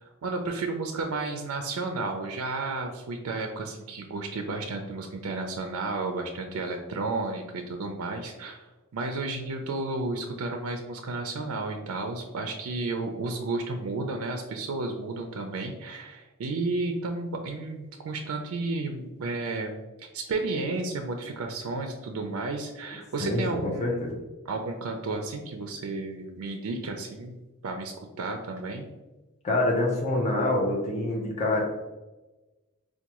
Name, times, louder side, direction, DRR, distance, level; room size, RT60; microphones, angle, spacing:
voice 1, 0.0-24.0 24.5-27.4 27.6-28.8, right 3 dB, 70° right, 4 dB, 0.4 m, -32 dB
voice 2, 23.2-24.1 29.4-31.6, left 2 dB, 30° left, -1 dB, 0.5 m, -26 dB
4.5 x 2.2 x 2.9 m, 1.1 s
head